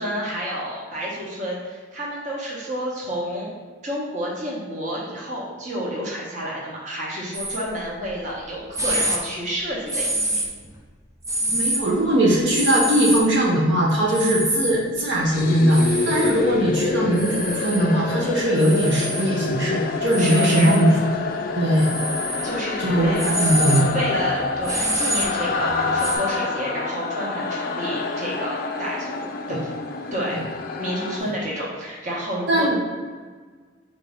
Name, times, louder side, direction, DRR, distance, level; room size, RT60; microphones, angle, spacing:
voice 1, 0.0-3.5 3.8-10.4 14.1-14.2 20.2-20.7 22.4-23.2 23.9-29.6 30.1-30.4 30.8-32.8, equal, 40° right, -4 dB, 1.0 m, -30 dB
sound 1, 7.3-7.6 8.3-8.4 8.7-9.2 9.9-10.7 11.2-11.8 12.5-13.2 14.1-14.7 15.7-16.3 17.1-17.8 18.6-19.2 20.1-20.8 21.7-22.5 23.0-26.2, right 1 dB, 15° right, 0.5 m, -26 dB
voice 2, 11.5-20.9 21.6-21.9 22.8-23.9 29.5-29.6 32.5-32.8, right 1 dB, 70° right, -4 dB, 0.9 m, -20 dB
sound 2, 15.3-31.2, left 4 dB, 45° left, 0.3 m, -27 dB
4.0 x 2.7 x 4.8 m, 1.5 s
head